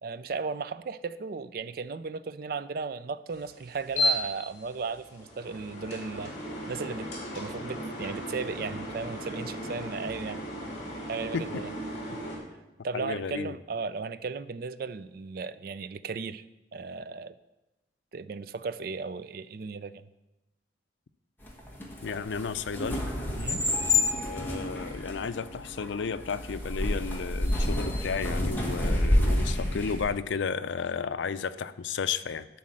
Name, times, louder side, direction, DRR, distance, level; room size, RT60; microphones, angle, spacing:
voice 1, 0.0-6.3 6.7-10.4 11.1-11.7 12.8-16.4 16.7-17.4 18.1-20.1 23.3-23.6, right 4 dB, 55° right, 0.4 m, -36 dB
sound 1, 3.3-12.4, equal, 40° left, 2.7 m, -35 dB
voice 2, 12.9-13.6 22.0-23.0 23.9-32.5, left 5 dB, 85° left, 0.5 m, -33 dB
sound 2, 21.5-30.0, left 1 dB, 10° left, 1.4 m, -29 dB
11.0 x 4.3 x 7.7 m
head